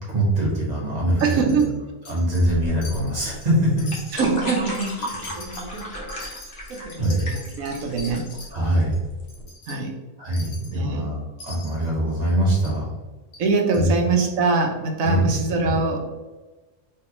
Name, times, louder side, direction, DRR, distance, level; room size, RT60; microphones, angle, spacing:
voice 1, 0.1-1.6 2.1-3.9 5.2-5.3 7.0-7.3 8.5-9.0 10.2-12.8 13.7-13.9 15.0-15.7, right 1 dB, 30° right, -5 dB, 1.3 m, -23 dB
Wind chime, 1.2-1.7 2.1-2.6 2.8-3.5 3.8-8.5 8.9-9.0 9.3-9.8 10.3-10.7 11.4-11.9 12.6-12.8 13.3-13.4 13.7-13.8, left 3 dB, 75° left, 1.4 m, -42 dB
voice 2, 1.2-1.7 4.1-6.1 6.7-8.3 9.7-9.9 10.7-11.0 13.4-16.0, right 4 dB, 85° right, 2 dB, 1.1 m, -24 dB
sound 1, 2.4-9.4, left 1 dB, 50° left, 1.2 m, -35 dB
3.2 x 3.1 x 2.9 m, 1.2 s
omnidirectional pair, 1.4 m